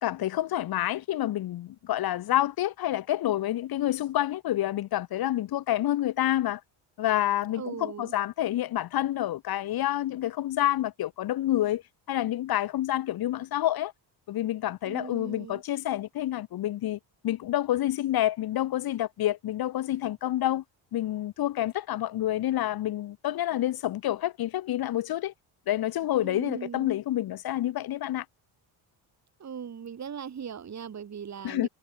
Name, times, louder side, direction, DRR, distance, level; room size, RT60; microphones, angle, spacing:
voice 1, 0.0-6.6 7.0-11.8 12.1-13.9 14.3-20.6 20.9-25.3 25.7-28.3 31.4-31.7, left 13 dB, 50° left, 0.8 m, -28 dB
voice 2, 7.5-8.1 14.8-15.6 26.2-26.9 29.4-31.7, right 7 dB, 35° right, 2.0 m, -39 dB
cardioid pair, 110°, 46 cm